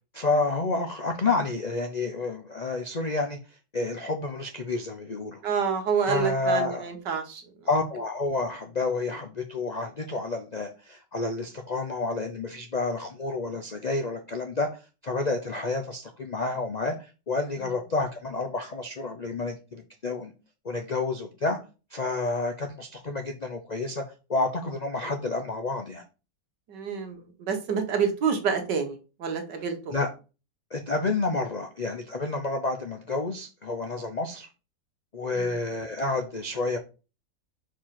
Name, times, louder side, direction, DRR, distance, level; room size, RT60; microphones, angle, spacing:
voice 1, 0.1-3.4 3.7-5.4 6.1-6.8 7.7-20.3 20.6-21.6 21.9-24.0 24.3-26.0 29.9-30.1 30.7-34.5 35.1-36.8, left 3 dB, 60° left, 4 dB, 0.4 m, -29 dB
voice 2, 5.4-7.4 26.7-29.9 35.4-35.5, right 6 dB, 75° right, 5 dB, 1.9 m, -28 dB
4.7 x 4.6 x 5.8 m, 0.32 s
omnidirectional pair, 1.9 m